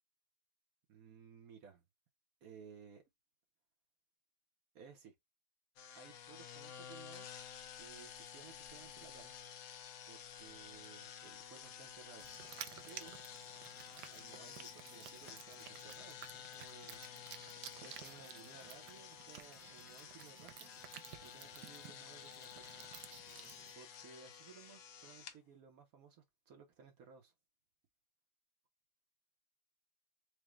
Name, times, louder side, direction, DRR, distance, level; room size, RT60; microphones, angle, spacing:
voice 1, 0.9-1.8 2.4-3.1 4.7-5.1 5.9-7.4 7.8-9.3 10.1-12.3 12.9-13.2 13.9-17.1 17.8-20.7 21.2-22.7 23.7-27.3, right 6 dB, 60° right, 0.9 m, -58 dB
sound 1, 5.8-25.4, left 9 dB, 80° left, 0.7 m, -52 dB
sound 2, 12.2-23.7, right 11 dB, 85° right, 0.9 m, -54 dB
4.7 x 2.1 x 3.0 m
omnidirectional pair, 2.3 m